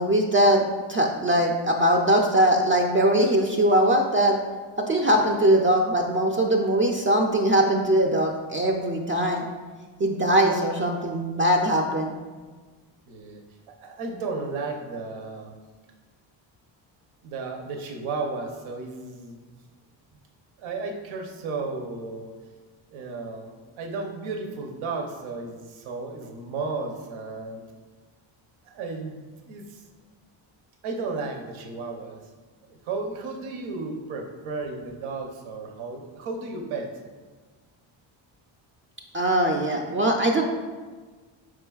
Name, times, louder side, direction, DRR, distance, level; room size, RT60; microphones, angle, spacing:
voice 1, 0.0-4.4 4.8-9.4 10.0-12.1 39.1-40.4, right 1 dB, 30° right, 1 dB, 0.3 m, -21 dB
voice 2, 13.1-13.4 13.7-15.5 17.2-19.4 20.6-22.3 22.9-27.6 28.6-29.8 30.8-32.2 32.6-36.9, right 3 dB, 80° right, 3 dB, 0.7 m, -34 dB
4.9 x 4.5 x 2.3 m, 1.4 s
cardioid pair, 100°, 47 cm